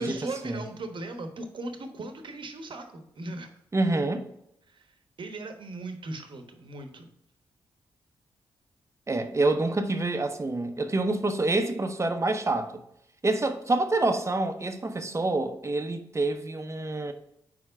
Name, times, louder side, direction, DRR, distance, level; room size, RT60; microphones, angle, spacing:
voice 1, 0.0-3.5 4.7-7.1, right 2 dB, 55° right, 1.1 m, -38 dB
voice 2, 3.7-4.2 9.1-12.8 13.2-17.1, right 2 dB, 30° right, 0.9 m, -27 dB
4.6 x 4.4 x 5.8 m
hypercardioid pair, 40°, 10 cm